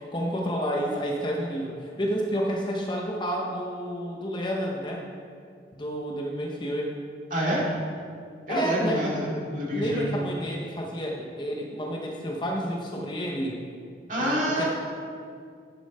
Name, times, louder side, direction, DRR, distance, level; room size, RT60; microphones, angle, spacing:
voice 1, 0.0-5.1 5.7-7.0 8.5-9.2 9.7-13.6 14.2-14.6, equal, 25° left, -1 dB, 0.8 m, -30 dB
voice 2, 7.3-7.6 8.5-10.1 14.1-14.6, equal, 45° right, -5 dB, 2.3 m, -27 dB
10.0 x 7.0 x 4.2 m, 2.2 s
head